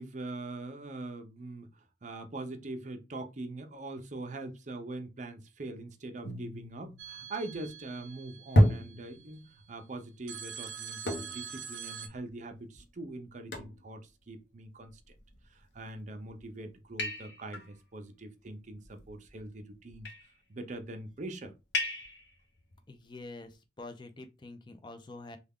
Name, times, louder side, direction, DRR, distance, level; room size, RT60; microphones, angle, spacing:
voice 1, 0.0-15.1 15.5-20.1 20.5-21.5, right 2 dB, 40° right, 0.6 m, -42 dB
sound 1, 6.2-7.7 8.6-9.5 11.1-11.6 12.1-12.2 12.7-12.8 13.5-13.9 15.0-15.5 16.1-16.4 17.0-17.7 18.8-19.4 19.9-20.4 21.7-22.3, equal, 70° left, 0.8 m, -31 dB
sound 2, 7.0-9.2 10.3-12.1, right 7 dB, 85° right, 0.5 m, -44 dB
voice 2, 22.9-25.4, left 2 dB, 25° left, 0.5 m, -46 dB
3.4 x 2.3 x 3.5 m
head